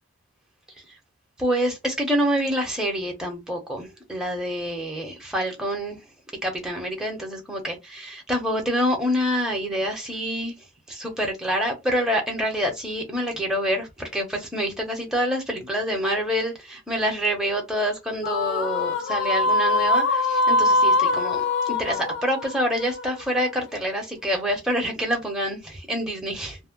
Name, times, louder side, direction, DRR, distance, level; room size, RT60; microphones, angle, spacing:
voice 1, 1.4-6.0 6.4-26.6, equal, 5° right, 0.7 m, -27 dB
sound 1, 18.2-23.7, left 2 dB, 55° left, 0.5 m, -23 dB
2.6 x 2.1 x 3.5 m
head